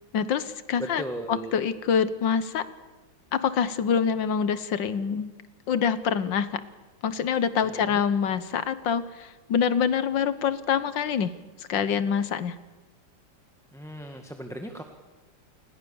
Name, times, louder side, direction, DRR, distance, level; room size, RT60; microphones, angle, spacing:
voice 1, 0.1-1.0 1.3-2.6 3.3-5.3 5.7-6.6 7.0-11.3 11.6-12.6, left 7 dB, 70° left, 14 dB, 1.7 m, -25 dB
voice 2, 0.8-1.5 7.6-8.0 13.7-14.8, right 1 dB, ahead, 4 dB, 1.4 m, -37 dB
29.0 x 20.5 x 7.1 m, 1.2 s
omnidirectional pair, 2.1 m